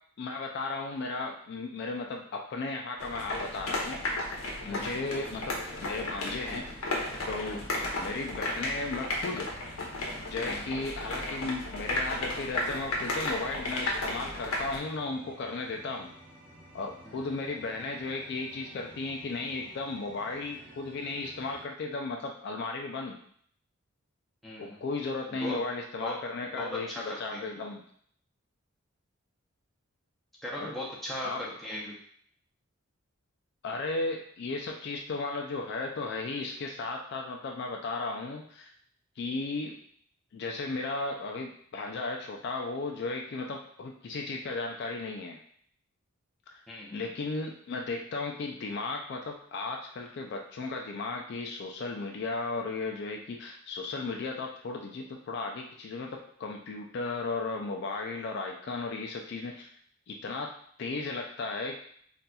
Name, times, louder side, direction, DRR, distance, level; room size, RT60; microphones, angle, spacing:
voice 1, 0.2-4.0 4.7-6.7 7.3-7.6 8.0-9.8 10.3-16.1 16.7-23.2 24.6-27.8 30.6-30.7 31.2-31.5 33.6-38.7 39.2-39.8 40.3-45.4 46.5-46.6 46.9-59.7 60.1-61.8, left 3 dB, 50° left, 2 dB, 0.3 m, -35 dB
sound 1, 3.0-14.8, left 1 dB, 85° left, 0.7 m, -34 dB
sound 2, 4.9-21.7, right 1 dB, 40° right, 0.7 m, -53 dB
voice 2, 24.4-24.8 25.3-25.6 26.0-26.2 26.6-27.4 30.4-32.0 46.7-47.1, left 1 dB, ahead, -6 dB, 0.7 m, -38 dB
4.1 x 2.5 x 2.2 m, 0.62 s
head